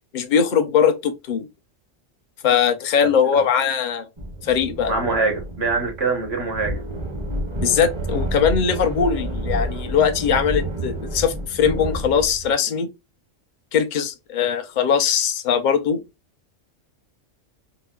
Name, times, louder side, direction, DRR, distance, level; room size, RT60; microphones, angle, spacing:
voice 1, 0.1-1.5 2.4-4.1 4.4-4.9 7.6-12.9 13.7-16.0, left 7 dB, 55° left, 0.5 m, -20 dB
voice 2, 3.0-3.4 4.9-6.8, right 3 dB, 60° right, 1.2 m, -24 dB
sound 1, 4.2-12.5, right 1 dB, 30° right, 0.5 m, -29 dB
4.0 x 2.1 x 2.2 m
omnidirectional pair, 1.3 m